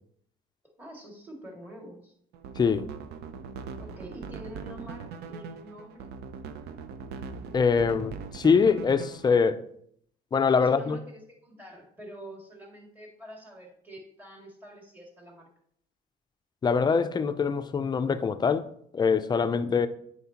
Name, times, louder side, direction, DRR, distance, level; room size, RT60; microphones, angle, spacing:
voice 1, 0.8-2.1 3.8-6.1 10.5-15.5, right 1 dB, 10° right, 2.1 m, -46 dB
sound 1, 2.3-9.4, right 5 dB, 75° right, 0.6 m, -41 dB
voice 2, 2.6-2.9 7.5-9.6 10.3-11.0 16.6-19.9, left 5 dB, 25° left, 0.4 m, -24 dB
8.0 x 5.1 x 2.9 m
cardioid pair, 110°, 17 cm